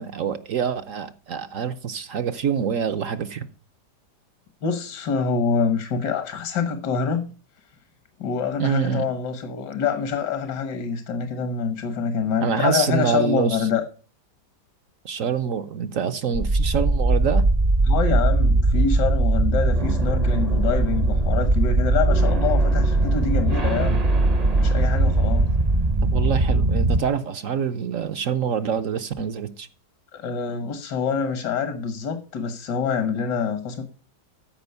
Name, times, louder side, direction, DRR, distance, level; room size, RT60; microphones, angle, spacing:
voice 1, 0.0-3.5 8.6-9.1 12.4-13.7 15.0-17.4 26.0-29.7, right 7 dB, 60° right, 1.0 m, -26 dB
voice 2, 4.6-7.3 8.2-13.8 17.9-24.0 24.6-25.5 30.1-33.8, left 6 dB, 75° left, 1.9 m, -26 dB
sound 1, 16.3-27.0, right 2 dB, 35° right, 0.7 m, -20 dB
13.0 x 5.2 x 6.8 m
omnidirectional pair, 1.9 m